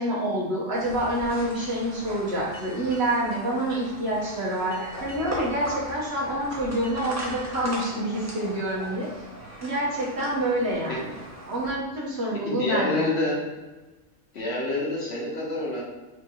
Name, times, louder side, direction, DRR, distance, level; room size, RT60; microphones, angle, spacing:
voice 1, 0.0-9.1 9.6-11.1 11.5-13.1, right 1 dB, 55° right, -6 dB, 1.2 m, -27 dB
sound 1, 0.7-11.7, equal, 20° right, 0.5 m, -40 dB
Boat Water vehicle, 2.5-9.6, right 1 dB, 30° left, 0.9 m, -49 dB
sound 2, 4.6-5.9 7.6-9.4, equal, 90° left, 1.5 m, -43 dB
voice 2, 12.4-13.4 14.3-15.8, left 2 dB, 55° left, -4 dB, 1.0 m, -27 dB
4.4 x 2.5 x 2.8 m, 1.2 s
omnidirectional pair, 1.4 m